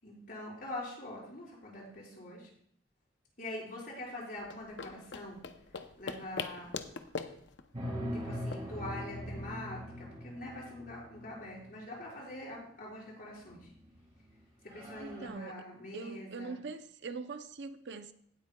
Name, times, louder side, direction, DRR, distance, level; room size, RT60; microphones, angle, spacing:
voice 1, 0.0-2.5 3.4-5.4 6.0-6.7 8.1-13.7 14.7-16.6, left 1 dB, 50° left, 5.0 m, -44 dB
sound 1, 4.4-9.6, left 5 dB, 80° left, 0.7 m, -43 dB
sound 2, 7.7-11.6 13.5-14.0 14.3-14.4 14.7-15.3, equal, 35° right, 3.3 m, -41 dB
voice 2, 15.0-15.6 15.9-18.1, right 4 dB, 70° right, 0.6 m, -42 dB
18.0 x 8.2 x 2.3 m
head